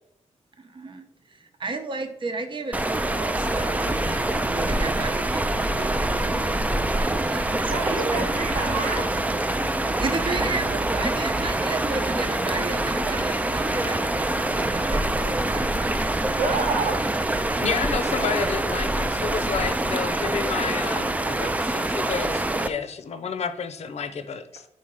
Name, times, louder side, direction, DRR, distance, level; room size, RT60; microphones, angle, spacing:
voice 1, 0.6-2.8 3.1-6.4 7.1-8.3 10.0-15.7, right 3 dB, 45° right, 6 dB, 0.8 m, -33 dB
sound 1, 2.7-22.7, right 1 dB, 10° right, 0.3 m, -25 dB
voice 2, 7.7-9.1 16.3-17.0, right 4 dB, 85° right, 1 dB, 1.2 m, -27 dB
voice 3, 17.6-24.7, left 6 dB, 65° left, 9 dB, 0.6 m, -30 dB
4.9 x 3.9 x 5.5 m, 0.78 s
wide cardioid pair, 120°, 12 cm